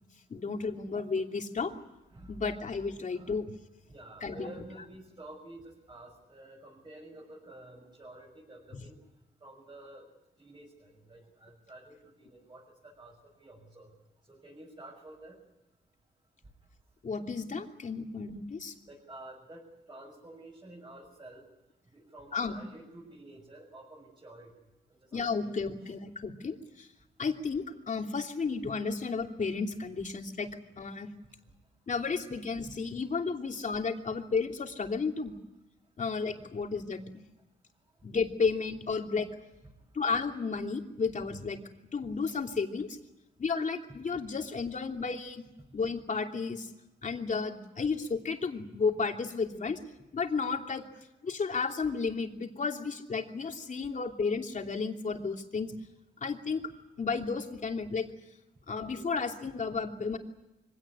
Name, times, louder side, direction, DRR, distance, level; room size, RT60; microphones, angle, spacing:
voice 1, 0.3-1.7 2.3-3.5 4.2-4.6 17.0-18.7 22.3-22.5 25.1-26.9 27.2-30.5 30.8-31.1 31.9-35.3 36.0-37.0 38.0-39.3 39.9-41.6 41.9-42.9 43.4-45.4 45.7-46.7 47.0-49.8 50.1-50.8 51.2-55.7 56.2-56.6 57.0-58.1 58.7-60.2, left 4 dB, 45° left, 3 dB, 2.9 m, -32 dB
voice 2, 2.1-2.4 3.1-3.3 3.9-9.0 9.4-10.1 10.4-13.1 13.4-13.9 14.3-15.4 18.9-21.4 21.9-24.5 25.1-25.8, right 1 dB, 25° right, -2 dB, 7.2 m, -50 dB
24.5 x 17.5 x 9.9 m, 0.97 s
cardioid pair, 95°, 18 cm